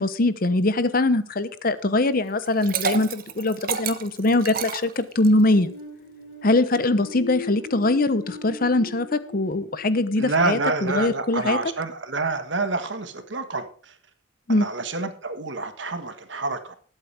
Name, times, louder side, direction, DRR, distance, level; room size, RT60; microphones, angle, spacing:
voice 1, 0.0-5.7 6.4-11.6 14.5-14.7, left 2 dB, 50° left, 13 dB, 0.9 m, -22 dB
Liquid, 2.4-5.5, right 7 dB, 50° right, 1.0 m, -30 dB
sound 1, 5.1-10.8, left 4 dB, 70° left, 4.6 m, -40 dB
voice 2, 10.2-13.9 14.5-16.8, right 3 dB, 70° right, 8 dB, 1.6 m, -28 dB
20.0 x 8.3 x 3.5 m, 0.42 s
head